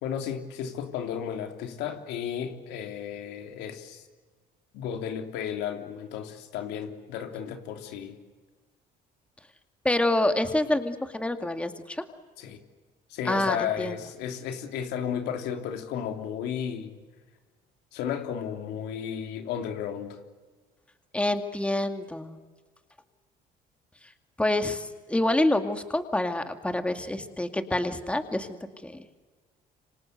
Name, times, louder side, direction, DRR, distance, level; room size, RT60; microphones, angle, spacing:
voice 1, 0.0-4.1 4.7-8.2 12.4-12.6 13.1-17.0 17.9-20.2, left 8 dB, 90° left, 5 dB, 3.3 m, -33 dB
voice 2, 9.8-12.0 13.3-14.0 21.1-22.4 24.4-28.5 28.8-29.0, left 1 dB, 5° left, 7 dB, 2.2 m, -27 dB
27.5 x 25.5 x 8.1 m, 1.4 s
cardioid pair, 110°, 17 cm